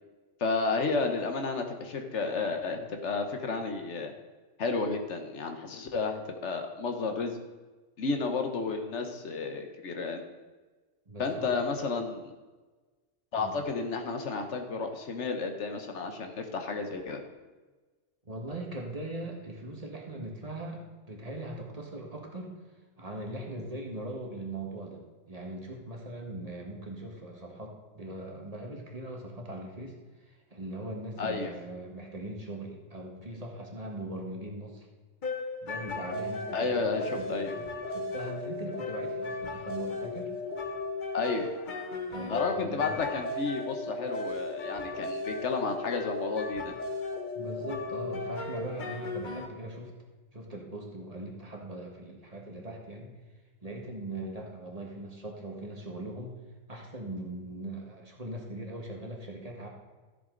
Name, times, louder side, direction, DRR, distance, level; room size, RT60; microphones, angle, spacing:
voice 1, 0.4-4.1 4.6-7.4 8.0-10.2 11.2-12.3 13.3-17.2 31.2-31.5 36.5-37.5 41.1-41.5 42.3-46.7, left 4 dB, 75° left, 5 dB, 1.4 m, -32 dB
voice 2, 11.1-11.5 13.4-13.6 18.2-20.8 21.1-22.5 23.0-29.9 30.2-34.9 35.6-40.3 42.1-43.0 47.3-49.9 50.3-53.1 53.6-56.3 56.7-59.7, right 1 dB, 30° right, 0 dB, 1.6 m, -40 dB
sound 1, 35.2-49.5, left 2 dB, 45° left, 0.9 m, -36 dB
13.0 x 7.8 x 3.9 m, 1.3 s
omnidirectional pair, 1.2 m